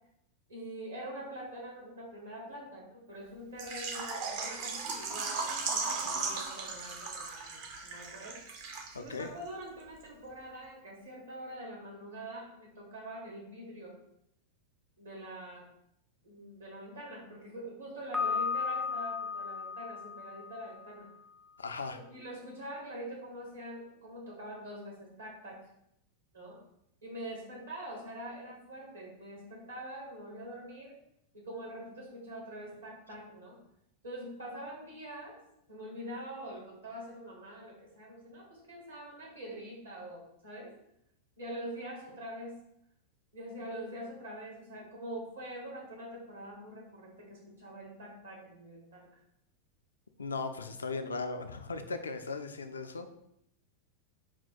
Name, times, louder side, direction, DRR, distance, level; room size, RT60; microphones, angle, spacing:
voice 1, 0.5-8.4 8.9-14.0 15.0-15.6 16.2-21.1 21.9-25.6 26.3-26.6 27.0-30.9 31.3-33.6 34.0-35.4 35.7-40.7 41.4-42.5 43.3-49.1, right 1 dB, 70° right, -3 dB, 1.6 m, -44 dB
Water / Liquid, 3.6-9.2 9.5-9.6 10.0-10.1, right 4 dB, 45° right, 0.6 m, -37 dB
voice 2, 8.9-9.3 21.6-22.0 50.2-53.1, left 4 dB, 75° left, 8 dB, 0.3 m, -37 dB
Piano, 18.1-21.0, left 5 dB, 5° right, 0.4 m, -35 dB
4.3 x 2.2 x 4.2 m, 0.77 s
figure-of-eight pair, 90°, 0 cm